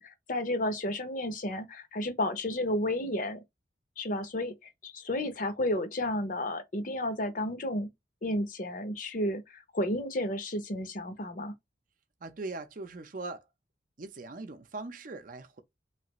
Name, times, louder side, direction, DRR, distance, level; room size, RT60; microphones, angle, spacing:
voice 1, 0.0-3.4 4.0-4.5 4.8-7.9 8.2-11.5, left 1 dB, 45° left, 0.7 m, -32 dB
voice 2, 12.2-13.4 14.0-15.6, right 3 dB, 50° right, 0.6 m, -40 dB
3.2 x 2.4 x 3.0 m
head